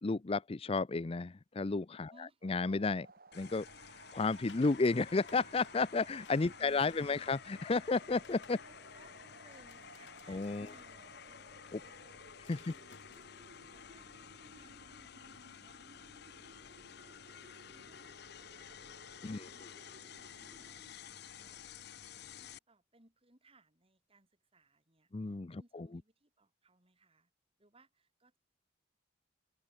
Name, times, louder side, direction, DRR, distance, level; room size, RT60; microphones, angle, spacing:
voice 1, 0.0-2.1 2.4-3.1 3.4-3.7 4.1-8.6 10.3-10.7 11.7-11.8 12.5-12.6 19.2-19.5 25.1-25.9, left 3 dB, 30° left, 0.5 m, -32 dB
voice 2, 2.1-2.5 6.5-7.3 8.5-12.4 12.6-27.3 27.6-28.4, right 2 dB, 30° right, 6.5 m, -67 dB
sound 1, 2.4-20.9, right 2 dB, 55° right, 5.0 m, -59 dB
sound 2, 3.3-22.6, left 8 dB, 60° left, 0.8 m, -53 dB
sound 3, 4.1-14.2, left 4 dB, 80° left, 7.9 m, -62 dB
head